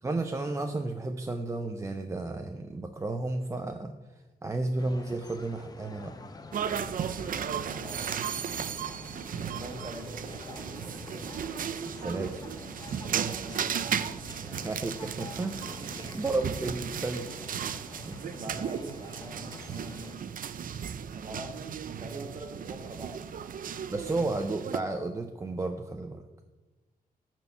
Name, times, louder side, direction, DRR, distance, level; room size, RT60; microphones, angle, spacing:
voice 1, 0.0-4.0 4.4-6.1 11.9-12.4 14.5-15.8 16.1-17.3 18.1-18.3 23.9-26.3, right 2 dB, 20° right, 5 dB, 0.6 m, -32 dB
sound 1, 4.8-20.2, left 3 dB, 25° left, 0.7 m, -47 dB
sound 2, 6.5-24.8, right 8 dB, 65° right, 0.5 m, -35 dB
voice 2, 7.7-8.2 9.4-11.3 13.0-14.1 15.8-16.2 18.1-20.2 21.1-23.2, right 2 dB, 40° right, 4 dB, 1.5 m, -43 dB
12.0 x 4.5 x 8.1 m, 1.2 s
wide cardioid pair, 165°, 15 cm